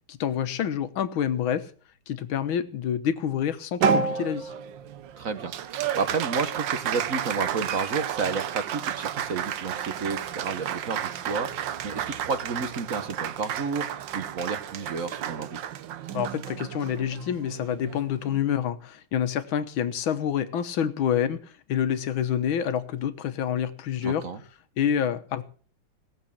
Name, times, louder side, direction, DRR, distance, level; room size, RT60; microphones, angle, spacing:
voice 1, 0.1-1.7 2.1-4.5 16.1-21.4 21.7-24.3 24.8-25.4, left 9 dB, 80° left, 1.8 m, -27 dB
Applause, 3.8-18.5, right 8 dB, 70° right, 1.5 m, -31 dB
voice 2, 5.2-5.5 5.9-15.6 24.0-24.4, right 4 dB, 45° right, 1.4 m, -31 dB
18.0 x 7.5 x 7.2 m
omnidirectional pair, 2.2 m